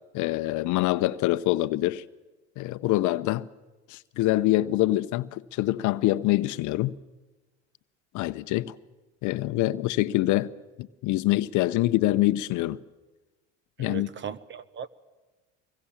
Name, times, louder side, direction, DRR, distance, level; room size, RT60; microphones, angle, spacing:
voice 1, 0.1-2.0 2.6-3.4 3.9-6.9 8.1-8.7 9.2-10.5 10.8-12.8 13.8-14.1, left 16 dB, 55° left, 0.8 m, -25 dB
voice 2, 13.8-14.9, right 7 dB, 30° right, 1.1 m, -37 dB
25.0 x 22.0 x 7.3 m
supercardioid pair, 95°, 35 cm